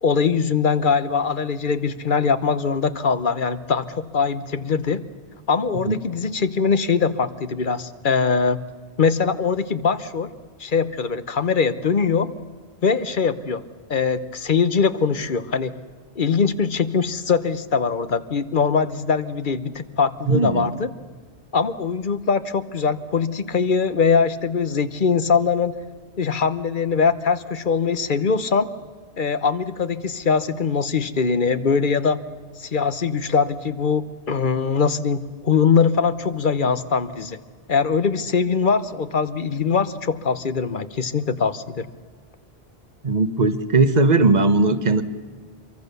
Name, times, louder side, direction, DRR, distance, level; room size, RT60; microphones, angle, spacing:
voice 1, 0.0-5.0 5.5-8.6 9.0-10.3 10.6-12.3 12.8-13.6 13.9-15.7 16.2-20.9 21.5-25.8 26.2-28.7 29.2-32.2 32.6-37.4 37.7-41.9, left 5 dB, 50° left, 14 dB, 1.1 m, -22 dB
voice 2, 20.3-20.7 43.0-45.0, right 3 dB, 40° right, 11 dB, 1.2 m, -18 dB
25.5 x 23.5 x 6.9 m, 1.5 s
omnidirectional pair, 1.1 m